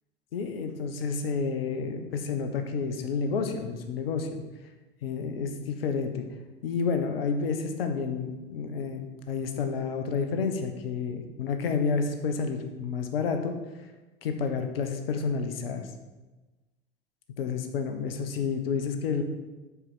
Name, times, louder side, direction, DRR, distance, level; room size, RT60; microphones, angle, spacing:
voice 1, 0.3-4.4 5.0-6.2 6.6-13.5 14.2-15.9 17.4-19.2, left 5 dB, 80° left, 6 dB, 1.3 m, -30 dB
9.6 x 4.8 x 7.6 m, 1.2 s
hypercardioid pair, 85°, 29 cm